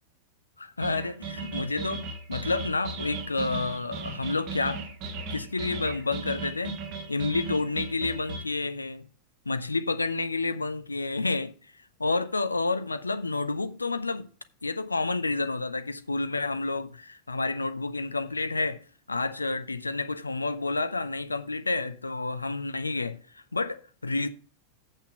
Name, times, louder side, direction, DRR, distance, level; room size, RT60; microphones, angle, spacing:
voice 1, 0.6-4.9 5.3-6.8 7.1-9.1 9.5-11.5 12.0-14.3 14.6-18.8 19.1-24.3, left 3 dB, 80° left, 0.7 m, -30 dB
sound 1, 0.8-8.4, right 4 dB, 40° right, 1.5 m, -37 dB
8.3 x 6.2 x 5.6 m
figure-of-eight pair, 90°, 0 cm